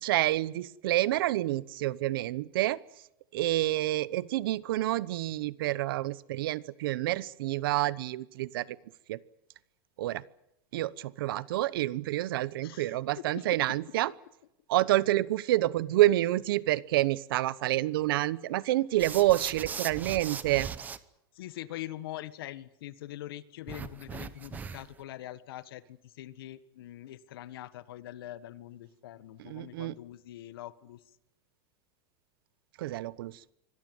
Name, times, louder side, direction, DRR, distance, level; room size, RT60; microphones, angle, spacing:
voice 1, 0.0-2.8 3.3-8.8 9.1-9.2 10.0-10.2 10.7-14.1 14.7-20.7 29.4-29.9 32.8-33.3, right 16 dB, 70° right, 20 dB, 1.0 m, -28 dB
voice 2, 12.6-13.8 21.3-31.0, left 14 dB, 80° left, 14 dB, 1.5 m, -43 dB
sound 1, 19.0-21.0 23.7-25.0, right 6 dB, 15° right, 0.9 m, -39 dB
25.0 x 17.5 x 9.4 m, 0.82 s
supercardioid pair, 170°, 12 cm